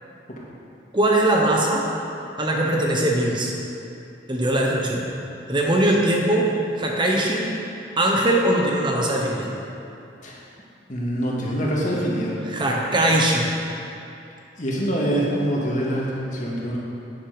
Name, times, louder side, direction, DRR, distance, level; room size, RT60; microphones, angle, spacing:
voice 1, 0.9-1.9 2.4-3.5 4.3-5.1 5.5-7.6 8.0-9.5 12.5-13.5, right 1 dB, 25° right, -1 dB, 1.0 m, -21 dB
voice 2, 10.9-12.4 14.6-16.8, equal, 45° left, -4 dB, 2.1 m, -25 dB
10.5 x 9.2 x 5.1 m, 2.7 s
head